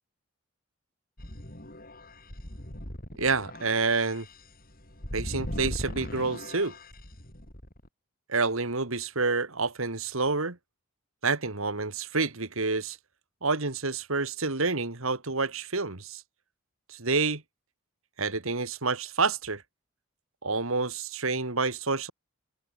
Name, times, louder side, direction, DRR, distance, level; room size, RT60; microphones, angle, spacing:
sound 1, 1.2-7.9, left 1 dB, 40° left, 7.2 m, -39 dB
voice 1, 3.1-4.3 5.1-6.7 8.3-10.6 11.2-13.0 13.4-16.2 16.9-17.4 18.2-19.6 20.4-22.1, right 4 dB, 70° right, 2.4 m, -28 dB
head